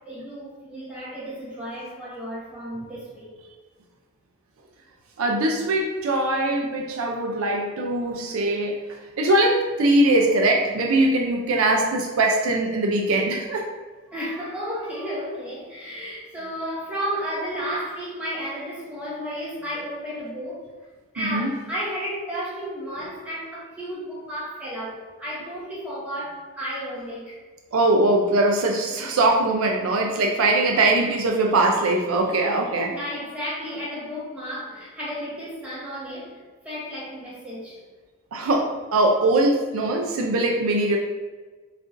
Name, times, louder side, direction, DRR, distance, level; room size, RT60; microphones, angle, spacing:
voice 1, 0.0-3.3 6.5-6.6 14.1-20.6 21.1-27.4 32.9-37.8, equal, 5° right, -8 dB, 1.3 m, -33 dB
voice 2, 5.2-13.7 21.2-21.5 27.7-33.0 38.3-41.0, right 2 dB, 65° right, 2 dB, 0.4 m, -21 dB
6.4 x 2.5 x 2.6 m, 1.4 s
head